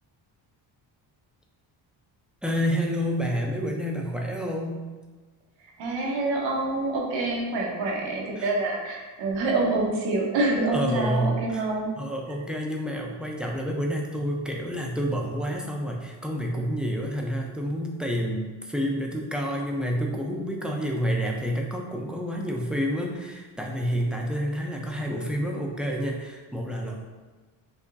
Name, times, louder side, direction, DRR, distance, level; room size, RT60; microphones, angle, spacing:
voice 1, 2.4-4.8 8.4-8.5 10.7-11.6 12.0-27.0, equal, ahead, 0 dB, 0.6 m, -29 dB
voice 2, 5.6-11.9, right 2 dB, 75° right, -2 dB, 1.2 m, -26 dB
6.0 x 2.9 x 2.6 m, 1.3 s
cardioid pair, 95°, 46 cm